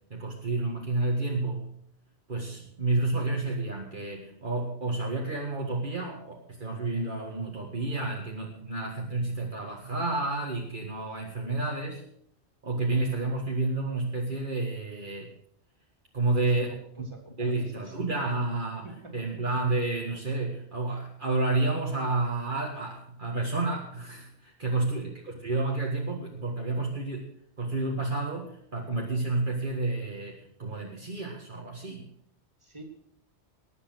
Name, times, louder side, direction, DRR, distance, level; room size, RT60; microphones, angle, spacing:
voice 1, 0.1-1.7 2.3-12.0 12.6-15.3 16.1-16.7 17.4-27.3 27.6-32.1, right 2 dB, 50° right, -1 dB, 1.9 m, -30 dB
voice 2, 16.3-16.8 17.1-17.9 18.8-19.3 24.8-25.1 32.6-32.8, equal, 25° right, 1 dB, 3.0 m, -45 dB
20.0 x 8.2 x 6.2 m, 0.69 s
omnidirectional pair, 1.1 m